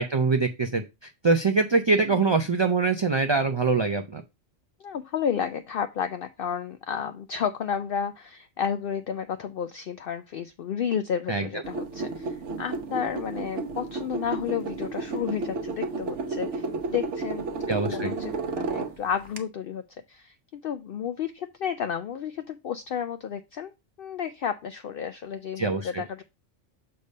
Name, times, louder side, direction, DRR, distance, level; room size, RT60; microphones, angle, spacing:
voice 1, 0.0-4.2 11.3-11.5 17.7-18.1 25.6-26.0, right 4 dB, 45° right, 0.3 m, -24 dB
voice 2, 4.8-19.8 20.1-23.7 24.0-26.2, left 8 dB, 60° left, 0.6 m, -32 dB
sound 1, 11.6-19.4, right 3 dB, 70° right, 1.2 m, -32 dB
6.6 x 3.4 x 5.3 m
omnidirectional pair, 1.3 m